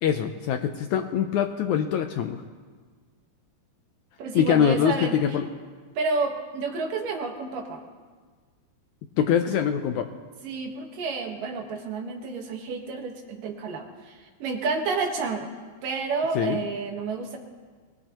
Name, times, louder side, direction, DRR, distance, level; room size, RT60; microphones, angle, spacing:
voice 1, 0.0-2.4 4.4-5.5 9.2-10.1 16.4-16.6, left 8 dB, 75° left, 6 dB, 1.8 m, -23 dB
voice 2, 4.2-5.2 6.0-7.8 10.4-15.5 15.8-17.4, right 4 dB, 75° right, 2 dB, 3.1 m, -30 dB
24.0 x 18.0 x 3.0 m, 1.5 s
omnidirectional pair, 3.9 m